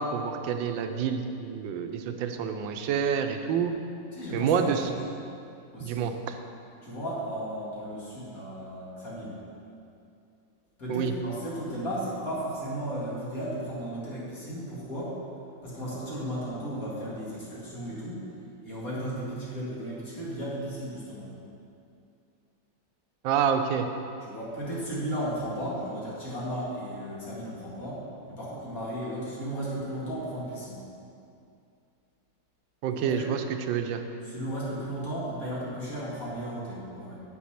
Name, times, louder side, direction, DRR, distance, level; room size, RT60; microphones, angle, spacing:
voice 1, 0.0-3.7 4.3-4.8 5.8-6.1 10.9-11.1 23.2-23.9 32.8-34.0, right 7 dB, 85° right, 6 dB, 1.4 m, -28 dB
voice 2, 4.1-5.0 5.7-6.0 6.8-9.4 10.8-15.2 15.6-18.2 18.6-21.3 24.2-30.8 32.9-33.3 34.2-37.2, equal, 50° left, -7 dB, 2.5 m, -35 dB
7.4 x 6.2 x 5.7 m, 2.5 s
omnidirectional pair, 2.0 m